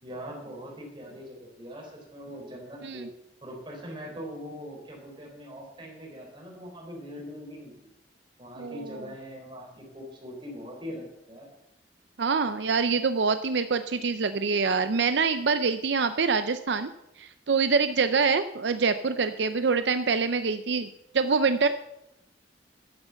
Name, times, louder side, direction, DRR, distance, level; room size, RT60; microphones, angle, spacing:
voice 1, 0.0-3.1 3.4-7.7 8.4-11.5, equal, 25° right, -1 dB, 3.9 m, -41 dB
voice 2, 8.6-9.0 12.2-16.9 17.2-20.9 21.1-21.7, right 5 dB, 75° right, 10 dB, 0.6 m, -25 dB
11.0 x 8.1 x 7.1 m, 0.85 s
head